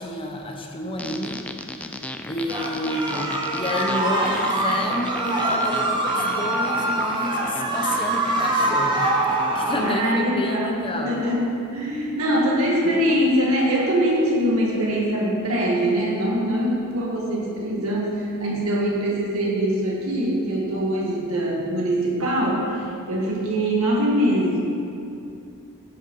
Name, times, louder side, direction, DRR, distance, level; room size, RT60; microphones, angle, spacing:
voice 1, 0.0-1.4 2.3-11.2, left 1 dB, 25° left, 2 dB, 0.8 m, -30 dB
sound 1, 1.0-9.9, left 1 dB, 5° left, 0.4 m, -36 dB
sound 2, 2.5-9.9, right 2 dB, 20° right, 1.1 m, -24 dB
voice 2, 9.8-24.6, equal, 70° right, -3 dB, 2.0 m, -23 dB
10.5 x 5.4 x 5.5 m, 2.6 s
head